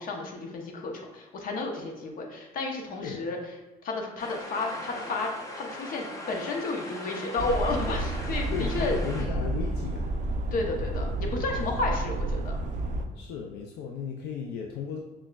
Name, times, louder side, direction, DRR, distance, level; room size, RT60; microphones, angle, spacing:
voice 1, 0.0-3.4 3.8-8.9 9.2-9.4 10.5-12.6, left 3 dB, 55° left, 2 dB, 0.7 m, -32 dB
sound 1, 4.2-9.3, left 1 dB, 20° left, 0.6 m, -40 dB
sound 2, 7.4-13.0, right 2 dB, 45° right, 0.4 m, -30 dB
voice 2, 8.5-10.1 13.1-15.0, left 7 dB, 85° left, 1 dB, 0.4 m, -35 dB
6.0 x 2.2 x 2.2 m, 1.1 s
cardioid pair, 110°, 17 cm